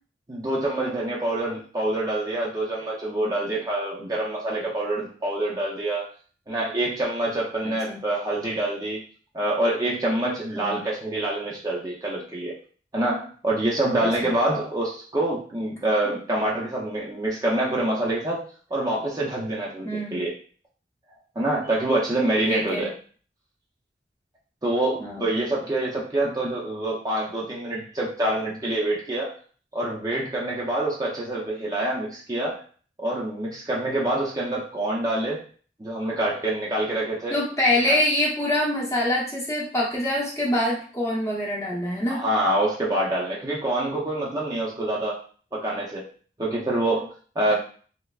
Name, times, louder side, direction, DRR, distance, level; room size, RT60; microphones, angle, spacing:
voice 1, 0.3-6.1 6.5-9.0 9.3-12.5 12.9-18.4 18.7-20.3 21.4-22.9 24.6-29.4 29.7-32.6 33.0-35.4 35.8-37.3 37.9-38.0 42.1-45.2 45.5-46.1 46.4-47.5, right 1 dB, 20° right, -5 dB, 0.5 m, -26 dB
voice 2, 7.6-8.0 10.5-10.8 19.8-20.2 22.5-22.9 25.0-25.3 37.3-42.2 47.5-47.6, left 1 dB, 15° left, -4 dB, 0.9 m, -25 dB
3.3 x 3.2 x 2.3 m, 0.43 s
head